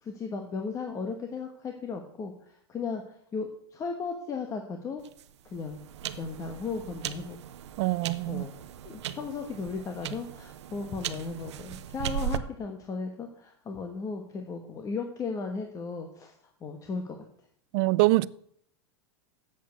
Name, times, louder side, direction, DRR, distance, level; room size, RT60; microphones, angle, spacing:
voice 1, 0.0-5.0 5.4-5.8 6.2-7.4 8.3-8.5 8.8-16.4 16.6-17.2, left 4 dB, 25° left, 1.3 m, -36 dB
sound 1, 5.0-12.4, right 10 dB, 85° right, 0.8 m, -38 dB
voice 2, 7.8-8.5 17.7-18.3, right 21 dB, 50° right, 0.4 m, -24 dB
8.3 x 7.4 x 8.4 m
supercardioid pair, 140°, 14 cm